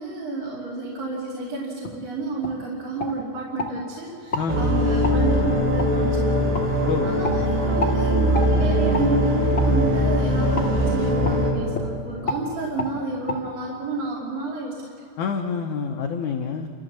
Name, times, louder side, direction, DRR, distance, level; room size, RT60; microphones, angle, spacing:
voice 1, 0.0-6.6 7.0-14.9, right 2 dB, 55° right, -7 dB, 4.4 m, -30 dB
sound 1, 1.8-2.0 2.4-2.6 3.0-3.7 4.3-4.5 5.0-5.2 5.8-5.9 6.5-6.7 7.2-7.4 7.8-8.0 8.3-8.5 8.9-9.1 9.5-9.7 10.6-10.7 11.2-11.4 11.7-11.9 12.3-12.4 12.8-12.9 13.3-13.4, left 2 dB, 30° left, 1.5 m, -29 dB
voice 2, 4.4-4.8 6.8-7.2 15.2-16.7, left 5 dB, 80° left, 2 dB, 1.7 m, -27 dB
sound 2, 4.5-11.5, equal, 80° right, 5.6 m, -21 dB
29.5 x 14.0 x 7.5 m, 2.8 s
omnidirectional pair, 4.9 m